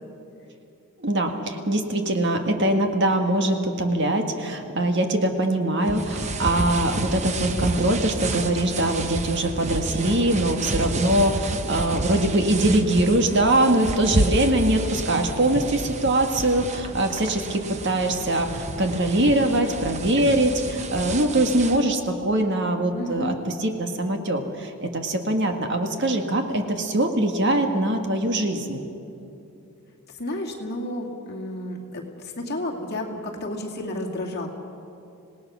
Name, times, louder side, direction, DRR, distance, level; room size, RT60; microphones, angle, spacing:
voice 1, 1.0-23.3 23.6-28.8, right 1 dB, 50° right, 5 dB, 1.7 m, -22 dB
sound 1, 5.8-21.8, right 2 dB, 30° right, 0.9 m, -30 dB
voice 2, 22.9-23.4 30.2-34.5, left 1 dB, 45° left, 0 dB, 2.3 m, -31 dB
26.5 x 18.0 x 6.2 m, 2.7 s
head